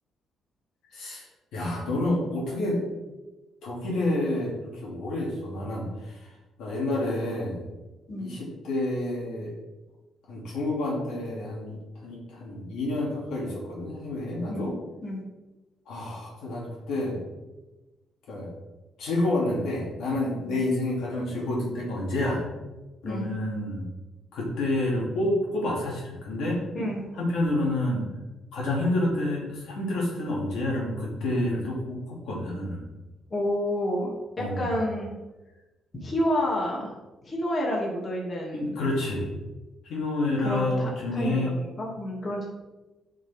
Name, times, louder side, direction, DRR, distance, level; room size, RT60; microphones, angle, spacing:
voice 1, 0.9-1.3 1.5-2.8 3.6-6.3 6.6-7.7 8.2-9.5 10.3-14.7 15.9-17.2 18.3-18.5 19.0-22.4 23.0-23.8 24.3-26.6 27.2-28.0 28.5-32.8 34.4-34.6 38.5-39.3 39.8-41.6, left 1 dB, 80° left, -4 dB, 2.8 m, -29 dB
voice 2, 26.7-27.1 33.3-35.1 35.9-36.9 37.2-38.8 40.4-42.4, left 1 dB, 35° left, -3 dB, 2.6 m, -29 dB
10.5 x 5.3 x 3.7 m, 1.1 s
cardioid pair, 90°, 0 cm